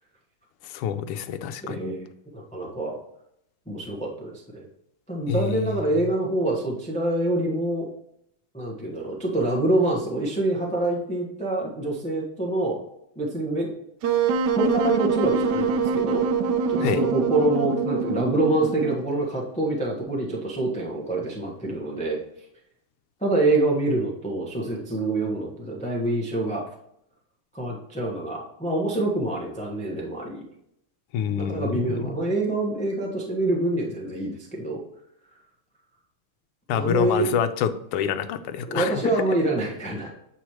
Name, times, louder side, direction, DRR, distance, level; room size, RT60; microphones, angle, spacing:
voice 1, 0.7-1.8 5.3-5.7 16.8-17.0 31.1-32.1 36.7-39.3, left 8 dB, 85° left, 10 dB, 1.5 m, -27 dB
voice 2, 1.6-2.1 2.3-3.0 3.7-4.7 5.1-7.9 8.5-12.8 13.2-13.7 14.5-16.3 16.7-22.2 23.2-26.6 27.5-30.4 31.4-34.8 36.7-37.2 38.7-40.1, right 2 dB, 10° left, -2 dB, 0.5 m, -26 dB
Wind instrument woodwind instrument, 14.0-19.1, right 5 dB, 85° right, 0.9 m, -24 dB
8.0 x 3.0 x 4.8 m, 0.76 s
omnidirectional pair, 2.4 m